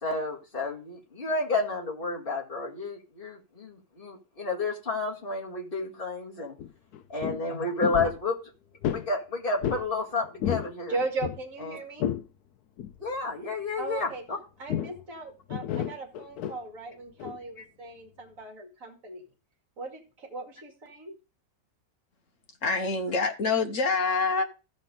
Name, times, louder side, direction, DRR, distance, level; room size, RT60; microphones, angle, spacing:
voice 1, 0.0-6.5 7.1-8.4 8.9-10.9 11.6-11.8 13.0-14.4, left 3 dB, 35° left, -2 dB, 2.2 m, -31 dB
sound 1, 6.6-6.7 6.9-7.4 7.8-8.2 8.8-9.1 9.6-9.9 10.2-10.7 11.0-12.2 12.8-13.0 14.7-15.0 15.5-16.6 17.2-17.4, left 10 dB, 80° left, 1.2 m, -31 dB
voice 2, 10.9-12.1 13.8-14.2 14.6-19.2 19.8-21.2, right 3 dB, 60° right, 2 dB, 2.8 m, -37 dB
voice 3, 22.6-24.4, left 4 dB, 55° left, 5 dB, 1.6 m, -26 dB
15.0 x 5.2 x 3.9 m, 0.33 s
omnidirectional pair, 1.6 m